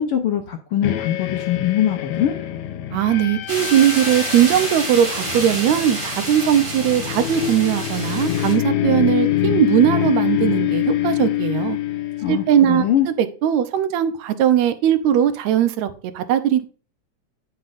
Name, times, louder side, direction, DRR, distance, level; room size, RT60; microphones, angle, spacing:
voice 1, 0.0-2.4 12.2-13.1, left 10 dB, 70° left, 1.3 m, -22 dB
sound 1, 0.8-12.9, left 13 dB, 90° left, 2.2 m, -25 dB
voice 2, 2.9-11.8 12.3-13.1 13.4-16.7, right 10 dB, 75° right, 2.0 m, -19 dB
sound 2, 3.5-8.5, right 1 dB, 15° right, 3.3 m, -28 dB
8.1 x 7.5 x 2.6 m
omnidirectional pair, 3.4 m